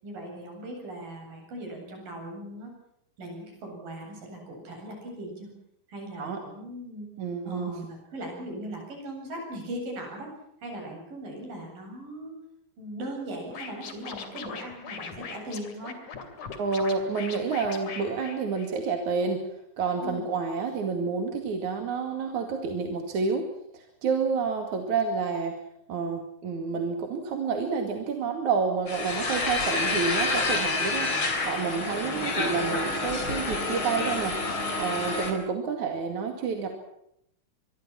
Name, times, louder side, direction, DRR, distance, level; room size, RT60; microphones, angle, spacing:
voice 1, 0.0-2.7 3.2-5.5 5.9-7.1 7.4-10.3 10.6-12.4 12.8-16.0 20.0-20.2 31.7-32.8, right 1 dB, 80° right, 1 dB, 9.8 m, -39 dB
voice 2, 7.2-7.7 16.6-19.4 19.8-23.4 23.7-25.5 25.9-31.1 31.4-36.8, right 5 dB, 60° right, 4 dB, 3.6 m, -29 dB
Scratching (performance technique), 13.5-19.0, left 6 dB, 60° left, 4.0 m, -40 dB
sound 1, 28.9-35.3, left 3 dB, 35° left, 4.8 m, -28 dB
25.0 x 23.5 x 6.0 m, 0.74 s
omnidirectional pair, 3.9 m